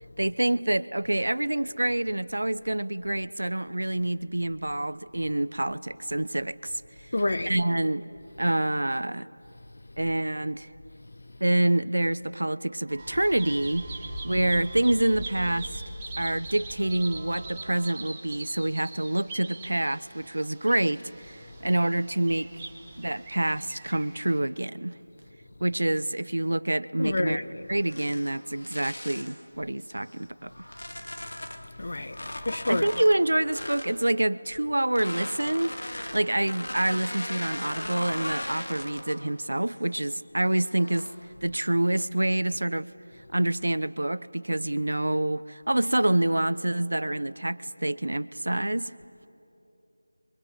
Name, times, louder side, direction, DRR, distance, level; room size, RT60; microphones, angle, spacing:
voice 1, 0.2-6.8 7.5-8.0 8.4-9.3 10.0-10.7 11.4-15.8 16.2-22.5 23.0-24.9 25.6-27.4 27.7-30.7 32.7-41.1 41.4-42.9 43.3-48.9, right 1 dB, 85° right, 0.8 m, -27 dB
voice 2, 7.1-7.6 11.2-11.4 27.0-27.7 31.4-32.9, left 2 dB, 55° left, 1.1 m, -30 dB
sound 1, 12.9-18.0, right 2 dB, 50° right, 2.9 m, -49 dB
Bird vocalization bird call bird song, 13.0-24.4, right 2 dB, 10° right, 1.6 m, -41 dB
sound 2, 27.8-29.4 30.0-31.7 32.1-34.0 34.8-39.3 39.7-40.1 40.7-41.2, left 1 dB, 75° left, 2.4 m, -38 dB
29.0 x 23.5 x 8.3 m
figure-of-eight pair, 175°, 0 cm